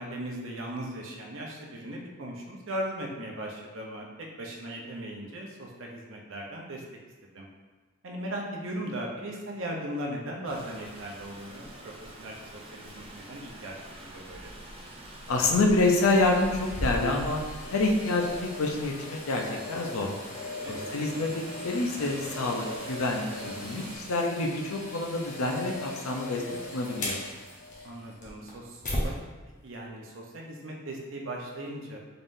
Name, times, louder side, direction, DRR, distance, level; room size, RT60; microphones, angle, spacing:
voice 1, 0.0-6.8 7.3-7.5 8.0-14.5 20.6-21.0 27.8-29.2 29.6-32.0, right 1 dB, 65° right, -1 dB, 0.7 m, -38 dB
Rain, 10.4-24.0, right 1 dB, 25° right, 0.5 m, -45 dB
voice 2, 15.3-17.4 17.7-20.1 20.7-26.4 26.7-27.2, left 2 dB, 85° left, 1 dB, 0.6 m, -27 dB
dust collector, 15.8-29.1 29.6-29.7, left 1 dB, 35° left, 0.8 m, -38 dB
3.9 x 3.6 x 2.6 m, 1.3 s
head